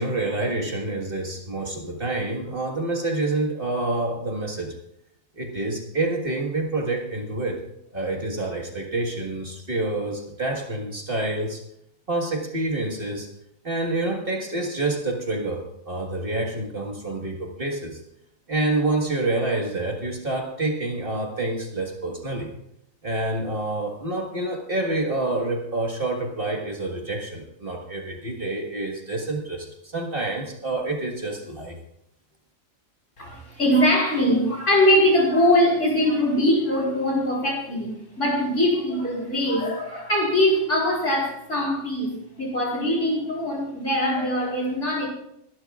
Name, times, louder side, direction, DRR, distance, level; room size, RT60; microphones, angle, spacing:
voice 1, 0.0-4.8 5.4-7.6 7.9-11.6 12.1-13.3 13.6-18.0 18.5-22.5 23.0-31.8, right 2 dB, 40° right, 0 dB, 1.8 m, -27 dB
voice 2, 33.2-45.1, left 1 dB, 60° left, -2 dB, 4.7 m, -22 dB
22.0 x 11.5 x 2.4 m, 0.76 s
omnidirectional pair, 1.5 m